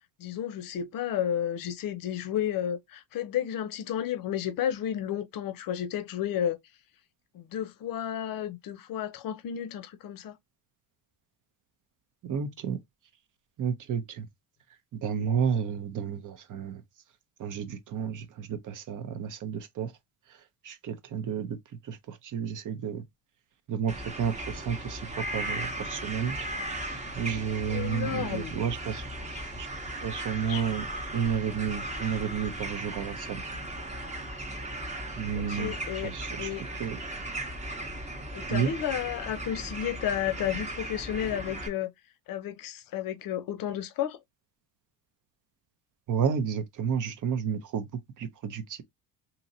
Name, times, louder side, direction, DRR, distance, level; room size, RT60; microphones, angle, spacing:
voice 1, 0.2-6.6 7.3-10.3 27.3-28.6 29.3-29.4 30.4-30.6 35.3-36.1 36.4-36.7 38.3-41.9 42.3-44.2, left 10 dB, 50° left, 0.7 m, -32 dB
voice 2, 12.2-12.8 13.6-14.3 14.9-16.8 17.4-19.9 20.3-21.6 21.8-23.0 23.7-26.4 26.9-29.1 29.6-29.7 30.0-30.8 31.1-33.4 35.1-35.7 36.0-37.0 38.5-38.7 46.1-48.8, right 7 dB, 45° right, 0.8 m, -31 dB
sound 1, 23.9-41.7, right 1 dB, 15° right, 0.9 m, -37 dB
2.8 x 2.8 x 2.6 m
supercardioid pair, 85°, 45 cm